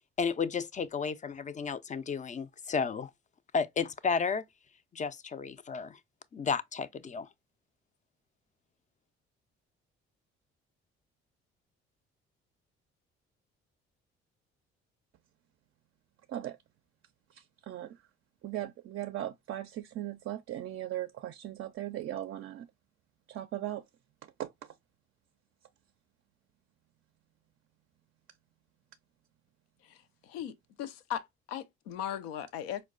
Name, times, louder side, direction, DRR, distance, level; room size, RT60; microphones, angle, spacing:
voice 1, 0.2-3.1 3.5-4.4 4.9-6.0 6.3-7.3, left 5 dB, 25° left, 0.4 m, -32 dB
voice 2, 17.3-18.0 18.4-22.7 23.3-23.8 24.4-24.5, right 13 dB, 45° right, 0.4 m, -38 dB
voice 3, 30.2-30.5 30.8-32.8, left 10 dB, 90° left, 0.5 m, -37 dB
4.4 x 2.2 x 2.3 m
hypercardioid pair, 55°, 29 cm